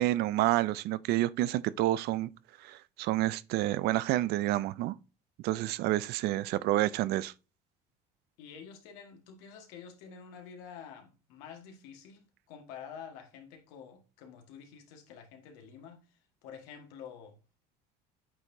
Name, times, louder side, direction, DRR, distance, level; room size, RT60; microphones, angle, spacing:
voice 1, 0.0-2.3 2.6-4.9 5.4-7.3, right 15 dB, 60° right, 0.4 m, -29 dB
voice 2, 8.4-17.4, left 7 dB, 85° left, 1.6 m, -49 dB
8.5 x 4.4 x 2.7 m
cardioid pair, 115°, 18 cm